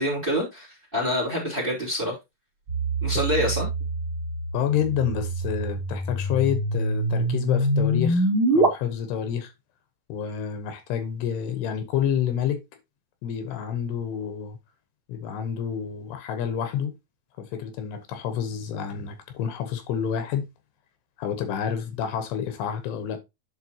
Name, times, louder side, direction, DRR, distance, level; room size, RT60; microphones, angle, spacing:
voice 1, 0.0-2.2 3.0-3.7, equal, 15° right, 2.3 m, -26 dB
sound 1, 2.7-8.7, right 1 dB, 40° right, 2.5 m, -25 dB
voice 2, 4.5-9.5 10.1-12.6 13.2-14.6 15.1-16.9 17.4-20.5 21.2-23.2, left 9 dB, 80° left, 3.2 m, -28 dB
11.0 x 4.6 x 2.9 m
omnidirectional pair, 4.8 m